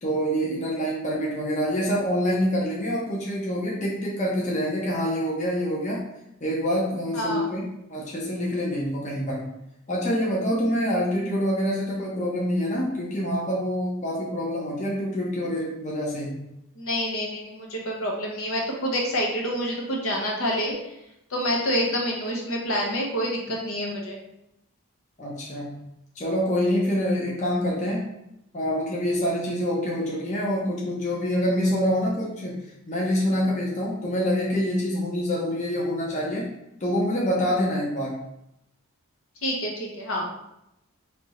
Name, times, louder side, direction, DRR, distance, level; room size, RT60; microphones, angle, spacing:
voice 1, 0.0-6.0 6.4-9.5 9.9-16.5 25.2-25.8 26.2-28.1 28.5-32.6 32.9-36.5 36.8-38.2, equal, 35° left, -4 dB, 0.8 m, -26 dB
voice 2, 7.1-7.5 16.8-20.7 21.3-24.2 39.4-40.3, equal, 65° left, -1 dB, 0.9 m, -27 dB
3.4 x 2.8 x 4.3 m, 0.84 s
head